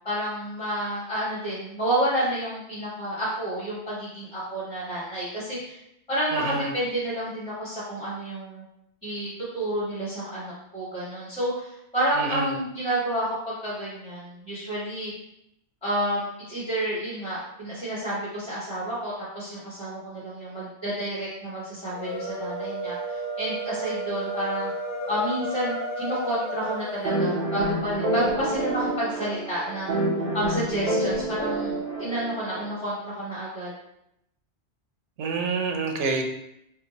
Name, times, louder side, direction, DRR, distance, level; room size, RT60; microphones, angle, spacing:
voice 1, 0.0-5.8 6.1-8.6 9.0-15.1 15.8-24.7 25.1-30.0 30.3-33.7, right 1 dB, 5° left, -9 dB, 1.1 m, -30 dB
voice 2, 6.3-6.7 12.2-12.5 35.2-36.2, right 4 dB, 85° right, 3 dB, 0.9 m, -27 dB
sound 1, 21.9-27.2, right 1 dB, 75° left, 0.9 m, -32 dB
sound 2, 27.0-32.7, right 1 dB, 50° right, 0.7 m, -28 dB
2.9 x 2.2 x 3.8 m, 0.81 s
omnidirectional pair, 1.2 m